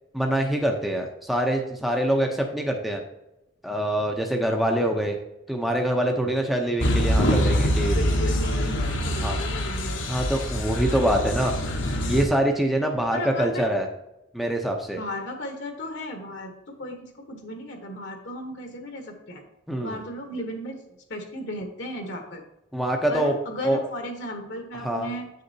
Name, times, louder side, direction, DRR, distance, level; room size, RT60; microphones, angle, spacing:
voice 1, 0.1-3.0 3.6-5.2 5.5-8.0 9.2-9.4 10.1-11.5 12.1-13.9 14.3-15.0 19.7-20.0 22.7-23.3 23.6-23.9 24.8-25.1, right 1 dB, ahead, 1 dB, 0.6 m, -25 dB
sound 1, 6.8-12.2, equal, 80° left, 1.2 m, -24 dB
voice 2, 7.9-10.1 13.1-13.7 15.0-19.4 19.8-20.8 21.1-22.4 23.1-25.3, left 1 dB, 60° left, 4 dB, 1.1 m, -35 dB
8.4 x 6.6 x 2.7 m, 0.91 s
head